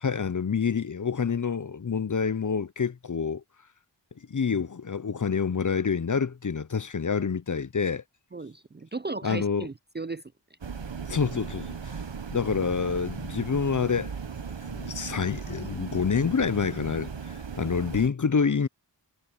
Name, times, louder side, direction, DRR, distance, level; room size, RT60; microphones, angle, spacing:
voice 1, 0.0-3.4 4.3-8.0 9.2-9.7 11.1-12.0 12.3-14.1 14.6-17.1 17.6-18.7, left 6 dB, 45° left, 0.6 m, -27 dB
voice 2, 8.3-10.2, right 3 dB, 25° right, 0.4 m, -35 dB
sound 1, 10.6-18.1, right 6 dB, 75° right, 1.1 m, -37 dB
wide cardioid pair, 40°, 44 cm